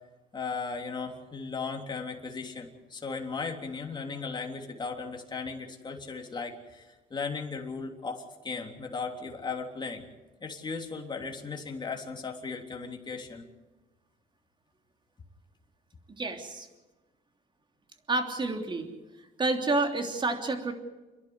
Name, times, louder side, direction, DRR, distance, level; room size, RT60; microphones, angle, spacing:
voice 1, 0.3-10.0 10.4-13.4, left 4 dB, 25° left, 2 dB, 3.3 m, -36 dB
voice 2, 16.1-16.7 18.1-18.9 19.2-20.7, right 2 dB, 30° right, 5 dB, 3.2 m, -29 dB
29.0 x 11.0 x 9.7 m, 1.2 s
cardioid pair, 110°, 17 cm